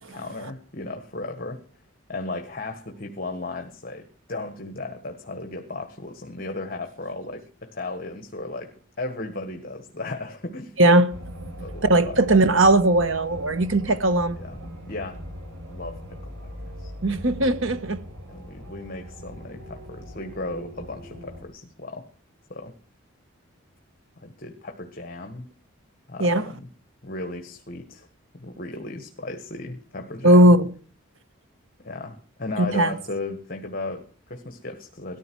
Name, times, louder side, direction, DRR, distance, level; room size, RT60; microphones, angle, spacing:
voice 1, 0.1-1.6 2.1-10.8 11.6-12.2 14.4-15.2 15.7-16.9 18.3-22.1 22.5-22.7 24.2-25.5 26.1-26.7 27.0-28.1 28.3-30.5 31.8-35.2, left 2 dB, 45° left, 1.5 m, -35 dB
voice 2, 10.8-11.1 11.8-14.4 17.0-18.0 26.2-26.5 30.2-30.7 32.6-33.0, right 1 dB, 70° right, 1.3 m, -18 dB
sound 1, 11.1-21.4, equal, 90° right, 4.7 m, -39 dB
18.0 x 13.5 x 4.7 m
head